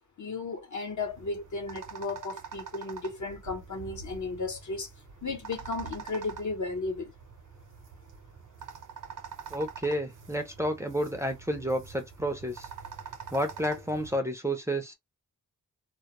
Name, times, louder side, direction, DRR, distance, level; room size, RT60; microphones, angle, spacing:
voice 1, 0.2-4.9 5.2-7.1, left 3 dB, 60° left, 0.9 m, -34 dB
sound 1, 1.0-14.2, right 6 dB, 65° right, 0.7 m, -45 dB
voice 2, 9.5-12.7 13.3-14.9, equal, 10° right, 0.5 m, -30 dB
2.2 x 2.1 x 2.9 m
wide cardioid pair, 90°, 33 cm